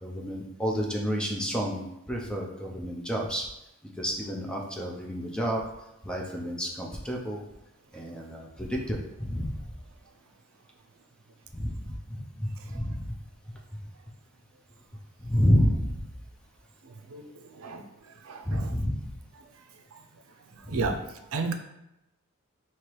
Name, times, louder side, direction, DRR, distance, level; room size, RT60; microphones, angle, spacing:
voice 1, 0.0-3.5 4.0-5.7 6.0-7.5 7.9-9.6 11.5-13.2 13.7-13.8 15.2-16.0 18.5-19.1 20.7-20.8, equal, 5° left, 0 dB, 0.5 m, -30 dB
voice 2, 16.8-17.9 18.2-18.7 19.9-20.0 20.5-21.5, right 4 dB, 80° right, 5 dB, 0.5 m, -34 dB
3.2 x 2.9 x 4.5 m, 0.88 s
head